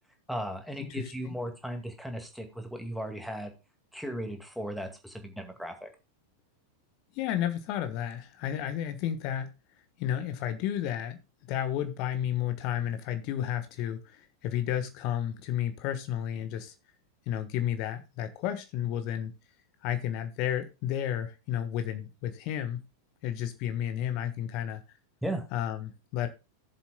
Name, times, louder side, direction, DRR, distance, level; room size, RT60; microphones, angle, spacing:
voice 1, 0.3-3.5 3.9-5.9 25.2-25.5, right 1 dB, ahead, 2.1 m, -36 dB
voice 2, 0.8-1.3 7.1-9.5 10.0-11.2 11.5-16.7 17.3-19.3 19.8-22.8 23.2-24.8 25.5-26.3, left 10 dB, 45° left, 1.3 m, -32 dB
17.0 x 7.4 x 2.3 m
figure-of-eight pair, 90°, 0 cm